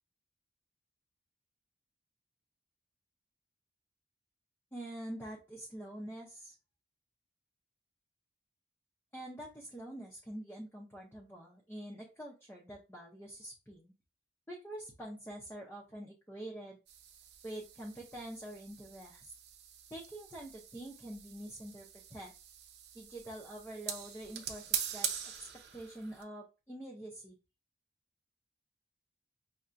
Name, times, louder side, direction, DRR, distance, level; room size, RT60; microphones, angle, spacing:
voice 1, 4.7-6.5 9.1-13.9 14.5-16.8 17.4-19.3 19.9-22.3 22.9-25.1 25.4-27.4, right 1 dB, 10° left, -2 dB, 0.6 m, -46 dB
sound 1, 16.9-26.2, right 9 dB, 70° right, 0.6 m, -43 dB
5.4 x 2.1 x 2.5 m, 0.30 s
head